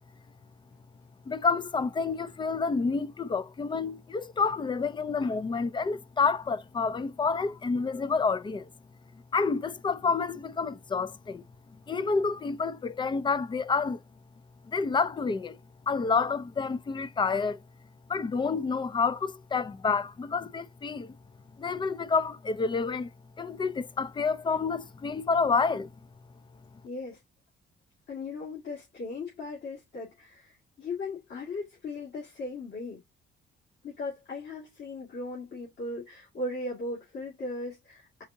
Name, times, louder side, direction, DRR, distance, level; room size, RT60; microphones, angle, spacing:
voice 1, 1.3-8.7 9.3-11.4 11.9-14.0 14.7-15.6 15.9-17.6 18.1-21.1 21.6-23.1 23.4-25.9, left 4 dB, 25° left, 0.5 m, -29 dB
voice 2, 26.8-27.2 28.1-33.0 33.8-38.2, left 2 dB, 65° left, 2.2 m, -38 dB
4.8 x 3.5 x 2.7 m
cardioid pair, 90°, 20 cm